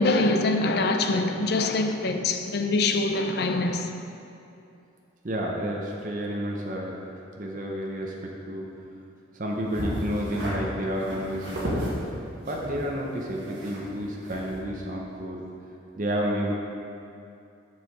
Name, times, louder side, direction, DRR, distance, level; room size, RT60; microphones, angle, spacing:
voice 1, 0.0-3.9, left 2 dB, 55° left, 6 dB, 0.5 m, -24 dB
voice 2, 5.2-7.0 7.4-8.7 9.3-11.9 12.5-15.5 16.0-16.5, equal, 40° right, -2 dB, 0.7 m, -30 dB
sound 1, 9.7-10.5 11.0-11.9 12.5-14.0 14.2-14.6, equal, 60° right, 1.8 m, -33 dB
7.4 x 6.5 x 4.0 m, 2.6 s
head